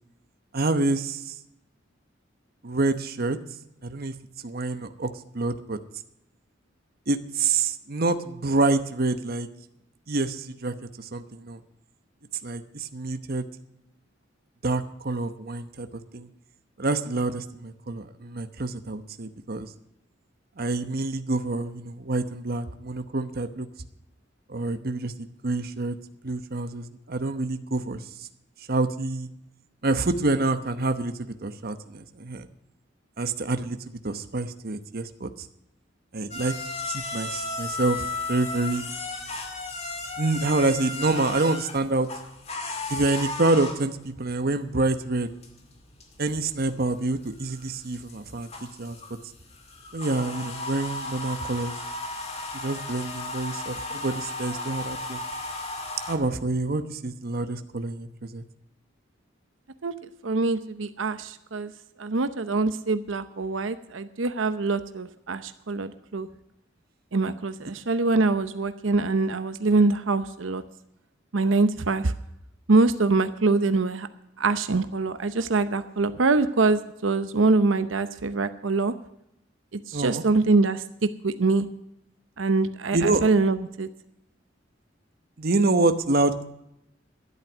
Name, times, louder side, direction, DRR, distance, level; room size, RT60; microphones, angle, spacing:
voice 1, 0.5-1.3 2.6-3.4 3.8-4.1 4.4-5.8 7.1-9.5 10.1-11.6 12.4-13.5 14.6-16.3 16.8-19.7 20.6-23.7 24.5-25.9 26.2-28.0 28.7-29.3 29.8-32.5 33.2-33.8 34.0-35.3 36.1-36.6 36.8-38.9 40.2-42.1 42.9-45.3 46.2-48.5 48.8-49.0 49.9-51.7 52.5-55.2 56.1-58.4 79.9-80.2 82.9-83.2 85.4-86.4, right 2 dB, 50° right, 9 dB, 1.0 m, -27 dB
sound 1, 36.3-56.2, left 2 dB, 35° left, 2.0 m, -35 dB
voice 2, 60.2-61.7 62.0-66.3 67.1-70.6 71.3-72.1 72.7-74.1 74.4-78.9 79.7-81.7 82.4-83.9, right 3 dB, 85° right, 11 dB, 0.8 m, -24 dB
12.5 x 11.0 x 6.1 m, 0.81 s
head